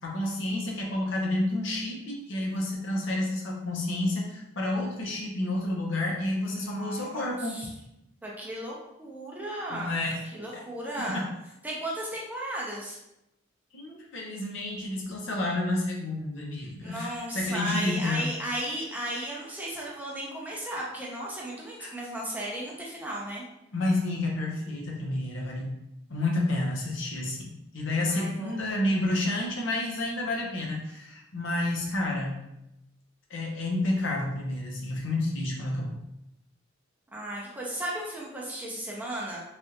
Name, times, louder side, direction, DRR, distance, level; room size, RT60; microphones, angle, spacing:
voice 1, 0.0-7.6 9.7-10.1 10.5-10.6 13.7-18.3 21.8-21.9 23.7-25.8 26.1-32.4 33.3-36.0, left 2 dB, 65° left, -1 dB, 0.7 m, -30 dB
voice 2, 6.4-7.7 8.2-10.0 10.3-11.2 11.6-13.0 16.6-23.4 28.1-28.6 37.1-39.4, right 1 dB, 10° right, -4 dB, 0.6 m, -35 dB
3.3 x 2.4 x 2.8 m, 0.86 s
head